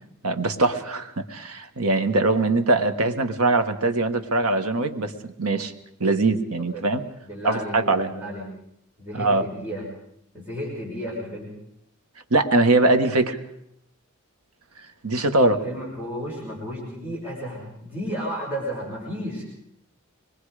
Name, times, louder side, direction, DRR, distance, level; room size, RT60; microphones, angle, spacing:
voice 1, 0.2-5.7 6.0-7.1 7.4-8.1 9.1-9.5 12.3-13.4 15.0-15.6, right 2 dB, 85° right, 8 dB, 1.5 m, -22 dB
voice 2, 7.2-8.5 9.0-9.9 10.3-11.5 15.4-19.4, equal, 10° right, -7 dB, 6.0 m, -33 dB
25.5 x 21.5 x 5.0 m, 0.73 s
head